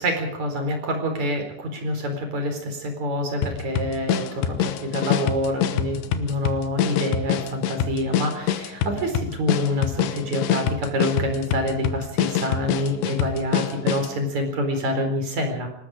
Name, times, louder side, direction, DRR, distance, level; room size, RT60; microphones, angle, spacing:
voice 1, 0.0-15.7, equal, 45° right, 4 dB, 5.4 m, -26 dB
sound 1, 3.4-14.2, left 9 dB, 75° left, 3.2 m, -26 dB
26.5 x 19.5 x 5.1 m, 0.75 s
omnidirectional pair, 4.9 m